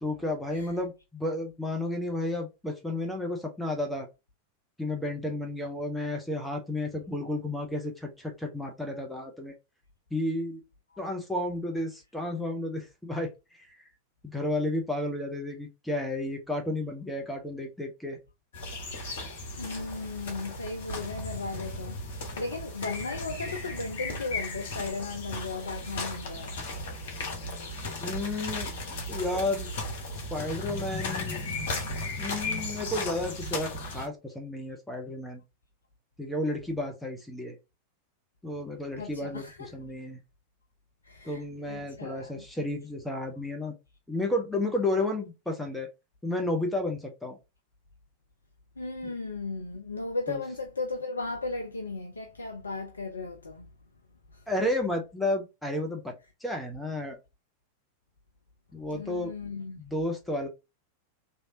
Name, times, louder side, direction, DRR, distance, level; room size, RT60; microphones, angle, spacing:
voice 1, 0.0-4.1 4.8-9.5 10.1-10.6 11.0-13.8 14.2-18.2 28.0-28.7 29.1-29.7 30.3-31.4 32.2-35.4 36.2-37.6 38.4-40.2 41.2-43.7 44.1-45.9 46.2-47.4 49.0-49.1 50.3-50.4 54.5-56.2 56.4-57.2 58.7-59.3 59.8-60.5, left 1 dB, 5° left, 0.8 m, -32 dB
sound 1, 18.5-34.1, left 2 dB, 55° left, 1.1 m, -36 dB
voice 2, 19.6-22.0 22.4-26.6 39.0-39.7 41.0-42.4 48.8-53.7 54.3-54.4 58.9-59.8, left 3 dB, 75° left, 0.4 m, -36 dB
3.2 x 2.7 x 2.7 m
figure-of-eight pair, 90°, 0 cm